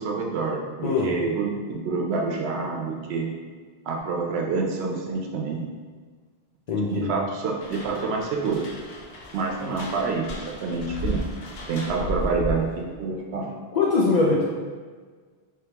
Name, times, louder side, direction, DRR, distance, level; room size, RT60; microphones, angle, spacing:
voice 1, 0.0-3.3 3.9-5.6 6.9-8.6 9.3-11.2 11.7-13.5, right 4 dB, 90° right, 0 dB, 0.8 m, -27 dB
voice 2, 6.7-7.1 13.7-14.4, left 3 dB, 55° left, -4 dB, 0.5 m, -22 dB
sound 1, 7.6-12.8, left 1 dB, 75° left, 0.8 m, -34 dB
3.4 x 3.2 x 2.9 m, 1.5 s
omnidirectional pair, 1.0 m